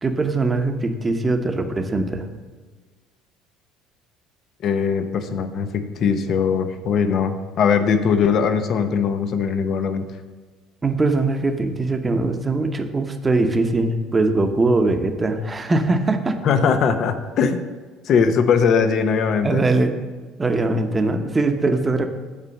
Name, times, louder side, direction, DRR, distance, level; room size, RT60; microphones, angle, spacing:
voice 1, 0.0-2.3 10.8-16.4 19.4-19.9 20.4-22.1, right 2 dB, 20° right, 6 dB, 0.9 m, -21 dB
voice 2, 4.6-10.1 16.4-17.6 18.1-19.6, left 6 dB, 55° left, 9 dB, 0.8 m, -20 dB
8.5 x 4.3 x 6.5 m, 1.4 s
supercardioid pair, 90°, 0 cm